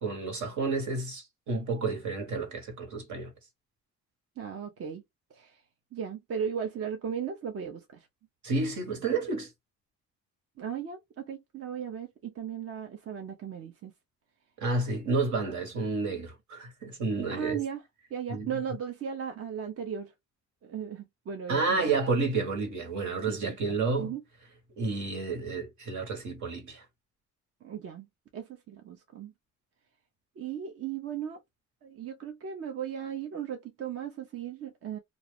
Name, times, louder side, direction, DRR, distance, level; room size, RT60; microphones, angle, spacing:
voice 1, 0.0-3.3 8.4-9.5 14.6-17.6 18.3-18.5 21.5-24.1 24.8-26.8, right 3 dB, 70° right, 1.5 m, -30 dB
voice 2, 4.4-5.0 5.3-5.6 5.9-8.1 10.6-11.0 11.3-13.9 17.3-17.8 18.1-20.1 20.6-21.9 23.3-24.2 27.6-28.1 28.3-29.3 30.4-31.4 31.8-35.0, right 8 dB, 50° right, 0.7 m, -36 dB
2.5 x 2.3 x 3.4 m
cardioid pair, 90°, 30 cm